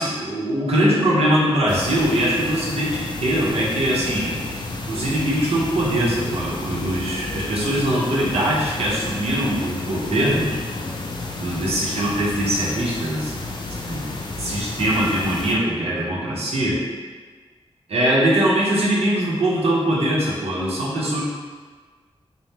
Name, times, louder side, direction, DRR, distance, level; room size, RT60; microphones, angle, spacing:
voice 1, 0.0-4.5 4.9-10.6 11.3-13.4 13.8-14.0 14.4-16.8 17.9-21.2, right 1 dB, 80° right, -5 dB, 0.9 m, -22 dB
sound 1, 1.7-15.5, left 2 dB, 45° left, 0.4 m, -32 dB
4.2 x 2.2 x 3.5 m, 1.4 s
wide cardioid pair, 140°, 10 cm